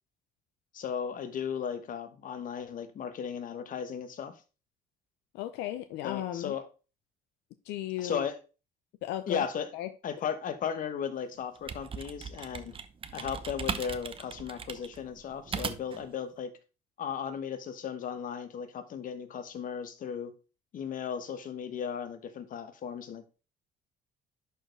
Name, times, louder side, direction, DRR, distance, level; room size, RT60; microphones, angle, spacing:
voice 1, 0.7-4.3 6.0-6.7 8.0-8.4 9.3-9.7 10.0-12.7 13.1-16.6 17.0-20.3 20.7-23.4, left 7 dB, 55° left, 1.2 m, -36 dB
voice 2, 5.3-6.5 7.6-8.3 9.0-9.4 9.7-9.9, left 13 dB, 90° left, 0.7 m, -35 dB
sound 1, 11.4-16.1, right 6 dB, 30° right, 0.8 m, -38 dB
11.0 x 4.6 x 3.3 m
cardioid pair, 110°, 17 cm